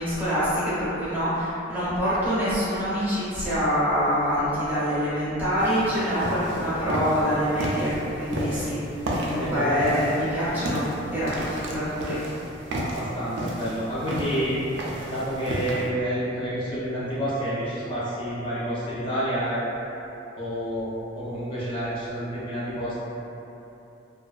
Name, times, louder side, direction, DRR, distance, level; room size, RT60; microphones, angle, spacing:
voice 1, 0.0-8.8 9.2-12.2, equal, 10° right, -12 dB, 0.7 m, -25 dB
sound 1, 5.6-15.9, right 1 dB, 65° right, 0.4 m, -33 dB
voice 2, 9.3-9.8 12.8-14.6 15.0-19.6 20.4-20.9 21.1-23.0, equal, 25° left, -11 dB, 0.5 m, -29 dB
2.6 x 2.2 x 2.3 m, 2.9 s
head